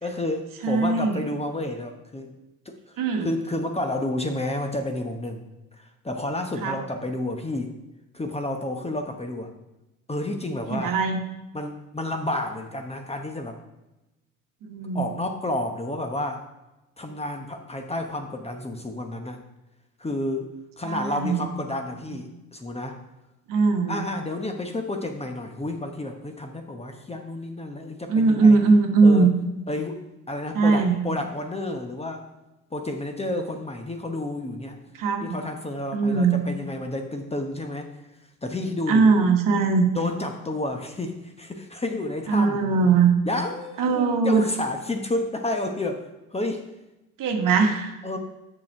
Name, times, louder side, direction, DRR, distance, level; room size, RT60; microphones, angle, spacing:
voice 1, 0.0-2.3 2.6-7.7 8.1-9.5 10.1-11.0 11.5-13.6 14.9-16.5 17.0-19.4 20.0-23.0 23.9-28.6 29.0-29.3 29.7-30.0 30.3-32.2 32.7-34.8 35.2-37.9 38.4-39.1 39.9-42.6 43.3-46.7 48.0-48.2, left 1 dB, 15° left, 5 dB, 0.9 m, -30 dB
voice 2, 0.6-1.2 3.0-3.3 6.6-6.8 10.7-11.2 14.6-15.2 20.9-21.5 22.1-22.2 23.5-24.1 28.1-29.3 30.5-31.0 35.0-35.4 35.9-36.4 38.9-39.9 42.3-43.1 43.8-44.4 47.2-48.0, right 4 dB, 55° right, 4 dB, 1.3 m, -20 dB
7.4 x 5.9 x 4.5 m, 0.98 s
hypercardioid pair, 65°, 40 cm